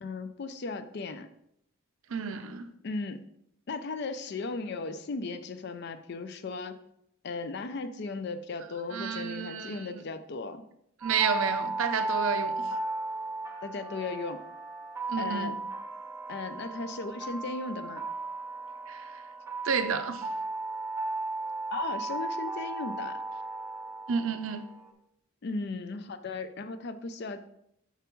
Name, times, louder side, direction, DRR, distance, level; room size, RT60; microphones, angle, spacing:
voice 1, 0.0-1.3 2.8-3.2 3.7-6.8 7.2-10.6 13.6-14.4 15.2-15.6 16.3-18.0 21.7-23.2 25.4-27.6, left 3 dB, 50° left, 11 dB, 0.4 m, -36 dB
voice 2, 2.1-2.7 8.9-10.0 11.0-12.5 15.1-15.5 18.9-19.2 19.6-20.2 24.1-24.6, right 6 dB, 65° right, 8 dB, 0.5 m, -31 dB
sound 1, 11.0-24.9, right 3 dB, 15° right, 0.7 m, -35 dB
6.6 x 5.9 x 3.1 m, 0.76 s
head